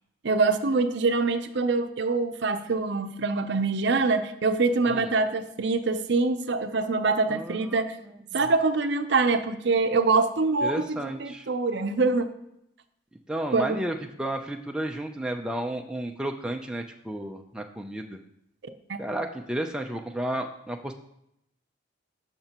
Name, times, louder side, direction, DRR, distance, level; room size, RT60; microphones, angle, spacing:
voice 1, 0.2-8.0 8.3-12.3 13.5-13.9 18.9-19.0, right 3 dB, 60° right, 9 dB, 0.6 m, -24 dB
voice 2, 7.3-7.8 8.3-8.4 10.6-11.5 13.3-18.2 19.0-20.9, right 1 dB, 5° right, 3 dB, 0.4 m, -32 dB
12.0 x 5.9 x 2.9 m, 0.79 s
head